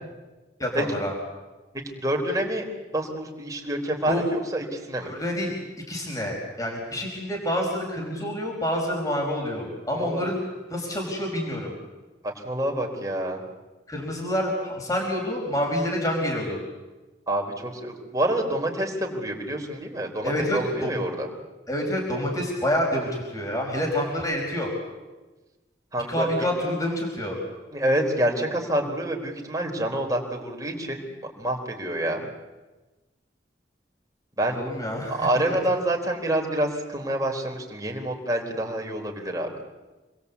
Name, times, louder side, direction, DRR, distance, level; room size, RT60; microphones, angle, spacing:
voice 1, 0.6-1.1 4.1-4.2 5.0-5.5 5.9-10.4 10.7-11.7 13.9-16.6 20.2-21.0 21.7-24.7 26.1-27.4 34.6-35.6, equal, 20° left, 0 dB, 5.1 m, -27 dB
voice 2, 1.8-2.7 2.9-5.1 9.9-10.2 12.2-13.4 17.3-21.3 25.9-26.3 27.7-32.3 34.4-34.6 35.1-39.5, right 1 dB, 20° right, 1 dB, 4.3 m, -27 dB
28.5 x 21.5 x 8.4 m, 1.2 s
head